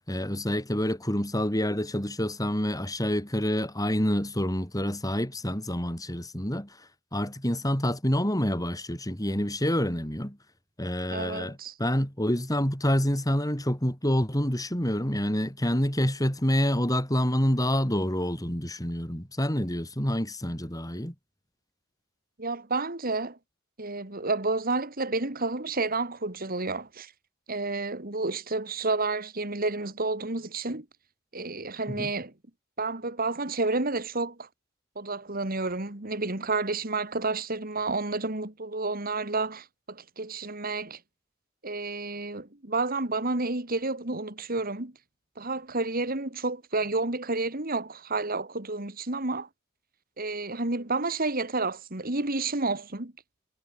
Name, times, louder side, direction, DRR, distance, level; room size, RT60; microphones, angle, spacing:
voice 1, 0.1-10.4 10.8-21.1 31.9-32.1, equal, 15° left, 5.7 m, -27 dB
voice 2, 11.1-11.7 22.4-23.4 23.8-27.1 27.5-30.9 31.3-32.3 32.8-34.5 35.0-41.0 41.6-44.9 45.4-49.5 50.2-53.1, right 3 dB, 45° right, 2.5 m, -30 dB
head